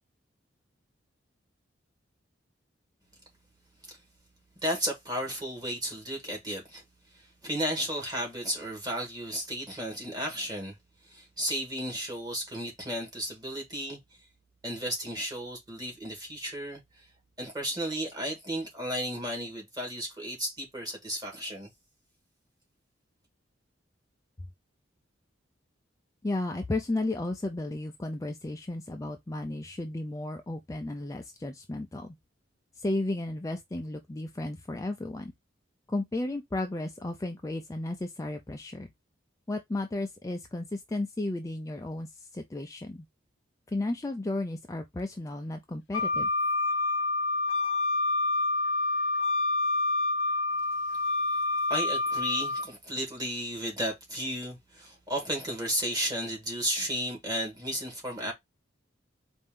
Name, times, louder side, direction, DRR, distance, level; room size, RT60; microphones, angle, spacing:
voice 1, 4.6-6.8 7.1-10.8 11.0-14.0 14.6-17.1 17.4-21.7 50.9-51.1 51.7-58.3, equal, 20° right, 1.8 m, -34 dB
voice 2, 26.2-32.1 32.8-35.3 35.9-38.9 39.5-43.0 43.7-46.3, left 2 dB, 15° left, 0.4 m, -34 dB
Wind instrument woodwind instrument, 45.9-52.7, left 2 dB, 75° left, 0.7 m, -28 dB
4.3 x 2.6 x 3.6 m
head